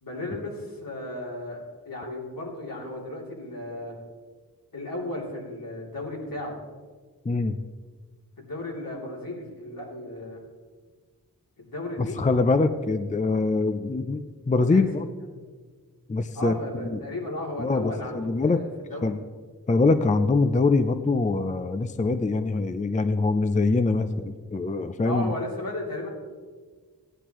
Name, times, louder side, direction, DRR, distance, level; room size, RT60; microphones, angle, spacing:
voice 1, 0.0-4.0 4.7-6.6 8.4-10.4 11.6-12.2 14.6-14.9 16.3-19.1 25.0-26.1, left 1 dB, 70° left, -3 dB, 3.1 m, -35 dB
voice 2, 7.3-7.6 12.0-15.1 16.1-17.0 17.6-18.6 19.0-19.2 19.7-25.3, left 3 dB, 20° left, 10 dB, 0.4 m, -24 dB
16.5 x 10.0 x 3.0 m, 1.5 s
wide cardioid pair, 80°, 35 cm